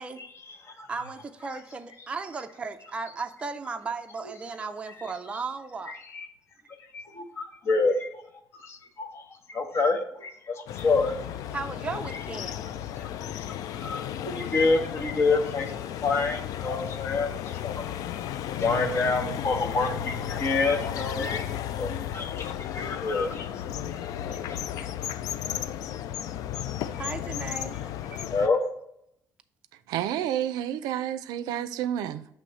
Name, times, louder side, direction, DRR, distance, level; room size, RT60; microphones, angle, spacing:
voice 1, 0.2-0.9 5.9-6.3 6.9-8.2 8.5-11.1 12.1-12.2 12.6-15.7 16.0-17.8 18.6-21.5 21.8-23.6 23.9-24.0 24.4-24.6 26.9-27.0 28.3-28.7, left 3 dB, 45° left, 1.0 m, -28 dB
voice 2, 0.9-6.0 11.5-12.7 18.0-18.1 23.5-23.6 24.3-24.4 24.8-24.9 27.0-27.8 28.1-28.2, right 4 dB, 20° right, 0.4 m, -36 dB
sound 1, 10.7-28.5, left 10 dB, 70° left, 0.3 m, -34 dB
voice 3, 29.9-32.3, right 11 dB, 90° right, 0.4 m, -30 dB
6.4 x 3.0 x 5.4 m
cardioid pair, 135°, 6 cm